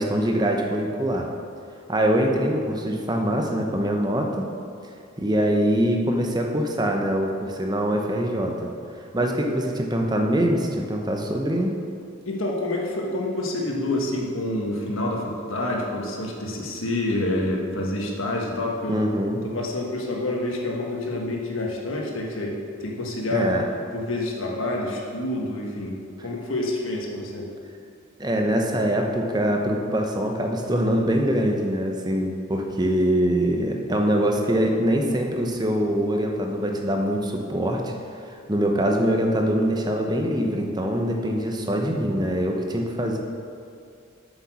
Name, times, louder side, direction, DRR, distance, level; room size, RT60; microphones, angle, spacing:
voice 1, 0.0-1.3 1.9-4.5 5.2-8.7 9.1-11.8 18.9-19.4 23.3-23.7 28.2-37.9 38.2-43.2, equal, 20° right, 2 dB, 0.8 m, -23 dB
voice 2, 12.2-19.0 19.4-23.5 23.9-27.5, left 1 dB, 70° left, -1 dB, 1.5 m, -28 dB
7.7 x 7.1 x 6.2 m, 2.4 s
head